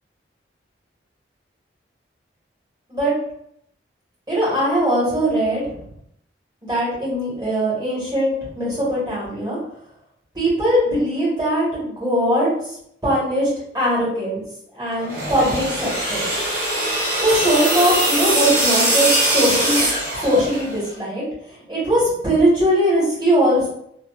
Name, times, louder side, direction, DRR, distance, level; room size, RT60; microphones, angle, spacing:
voice 1, 4.3-5.8 6.6-9.6 10.3-12.5 13.0-13.5 13.7-14.4 14.7-16.3 17.2-19.8 20.2-21.2 21.7-23.7, equal, 25° right, -8 dB, 1.4 m, -20 dB
sound 1, 15.0-20.8, right 1 dB, 55° right, 1.1 m, -21 dB
2.7 x 2.4 x 2.4 m, 0.72 s
head